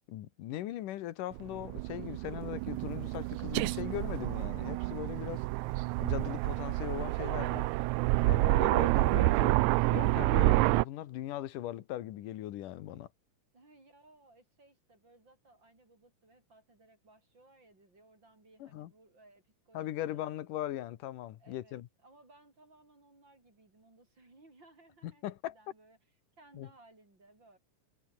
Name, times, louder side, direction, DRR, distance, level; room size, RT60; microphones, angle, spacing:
voice 1, 0.1-5.4 6.0-7.7 8.2-9.6 9.9-13.1 18.6-18.9 19.7-21.9 25.2-25.6 26.5-26.7, left 13 dB, 85° left, 2.8 m, -39 dB
Aircraft, 1.3-10.8, right 21 dB, 80° right, 1.8 m, -28 dB
voice 2, 13.5-20.3 21.4-26.0 26.4-27.6, right 2 dB, 35° right, 7.8 m, -61 dB
omnidirectional pair, 3.6 m